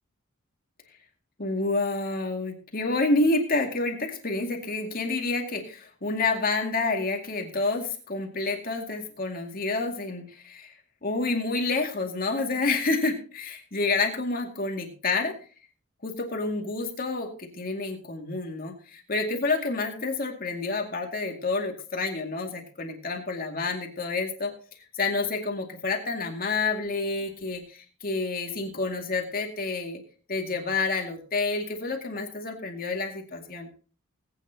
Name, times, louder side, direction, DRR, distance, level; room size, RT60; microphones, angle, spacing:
voice 1, 1.4-10.7 11.0-15.4 16.0-24.5 24.9-30.0 30.3-33.7, left 3 dB, 45° left, 3 dB, 2.2 m, -29 dB
20.0 x 9.1 x 2.9 m, 0.39 s
head